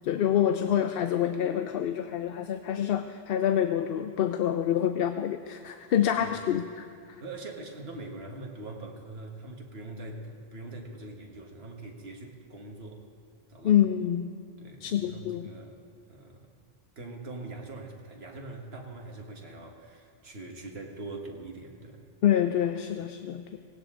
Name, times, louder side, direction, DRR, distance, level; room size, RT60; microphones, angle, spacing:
voice 1, 0.0-6.9 13.6-14.3 14.8-15.5 22.2-23.6, left 10 dB, 70° left, 8 dB, 0.7 m, -27 dB
voice 2, 7.2-13.0 13.5-13.8 14.6-15.8 16.1-16.5 16.9-22.0, right 2 dB, 75° right, 1 dB, 1.8 m, -42 dB
18.0 x 16.5 x 3.8 m, 2.3 s
omnidirectional pair, 1.1 m